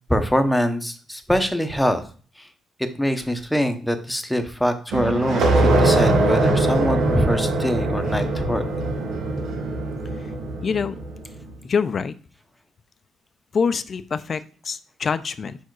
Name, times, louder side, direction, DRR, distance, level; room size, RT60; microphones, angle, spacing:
voice 1, 0.1-2.0 2.8-8.6, equal, 5° left, 7 dB, 0.9 m, -23 dB
sound 1, 4.9-11.3, right 2 dB, 80° right, 1.1 m, -22 dB
voice 2, 10.6-11.0 11.6-12.1 13.5-15.6, left 6 dB, 45° left, 13 dB, 0.5 m, -25 dB
5.0 x 4.5 x 4.7 m, 0.40 s
cardioid pair, 90°, 0 cm